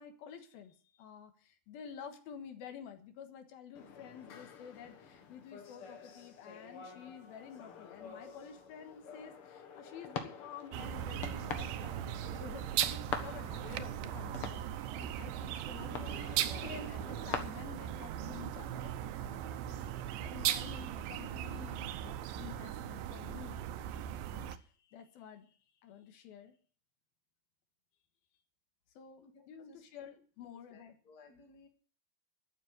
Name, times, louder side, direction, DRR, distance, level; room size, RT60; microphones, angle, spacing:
voice 1, 0.0-16.3 16.6-23.6 24.3-25.5 25.8-26.5 29.0-31.0, left 8 dB, 80° left, 7 dB, 3.2 m, -50 dB
sound 1, 3.7-17.3, left 6 dB, 50° left, 1.7 m, -46 dB
sound 2, 10.7-24.6, right 11 dB, 80° right, 2.4 m, -38 dB
voice 2, 29.2-29.8 30.7-31.7, left 3 dB, 30° left, 3 dB, 2.4 m, -60 dB
12.5 x 7.7 x 9.3 m, 0.42 s
omnidirectional pair, 4.3 m